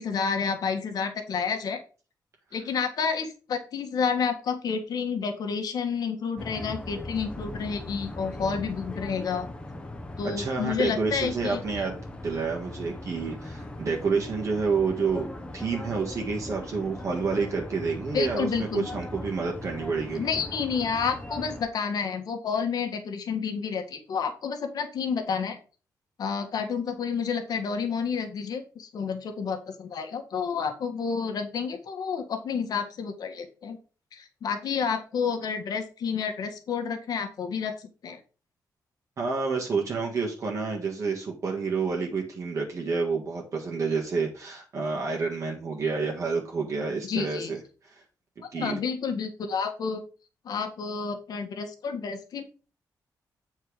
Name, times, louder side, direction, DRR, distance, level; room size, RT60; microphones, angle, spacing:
voice 1, 0.0-1.8 2.5-9.5 10.2-11.6 18.1-18.8 20.1-25.6 26.2-33.8 34.1-38.2 47.1-47.5 48.6-50.0 50.5-52.4, left 6 dB, 70° left, 5 dB, 1.7 m, -30 dB
sound 1, 6.4-21.6, left 1 dB, 15° left, 1.0 m, -39 dB
voice 2, 10.2-12.0 12.2-15.3 15.5-20.3 39.2-47.6 48.5-48.8, right 4 dB, 50° right, -1 dB, 1.7 m, -29 dB
8.3 x 4.5 x 4.8 m, 0.35 s
wide cardioid pair, 145°, 7 cm